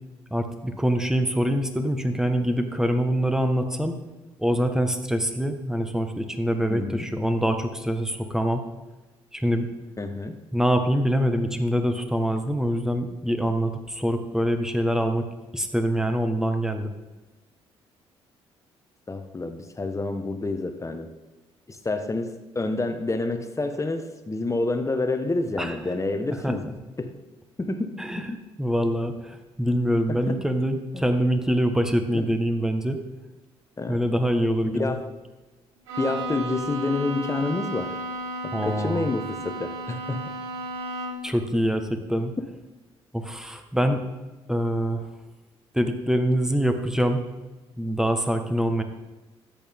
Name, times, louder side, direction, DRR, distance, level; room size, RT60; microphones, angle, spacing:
voice 1, 0.3-4.0 4.4-8.6 9.3-9.7 10.5-15.3 15.5-16.9 25.6-25.7 26.4-26.5 28.0-28.2 28.6-33.0 33.9-34.9 38.5-39.1 41.2-42.3 43.1-44.1 44.5-45.0 45.7-47.3 47.8-48.8, equal, 5° right, 7 dB, 1.5 m, -24 dB
voice 2, 6.7-7.1 10.0-10.4 19.1-21.1 21.7-26.7 27.0-27.2 27.6-28.4 30.1-30.4 30.9-31.0 32.1-32.3 33.8-34.0 34.7-35.1 36.0-38.0 38.4-40.3, left 2 dB, 20° left, 7 dB, 1.4 m, -28 dB
Bowed string instrument, 35.9-41.4, equal, 85° right, 1.3 m, -33 dB
14.0 x 8.7 x 3.7 m, 1.2 s
hypercardioid pair, 50°, 14 cm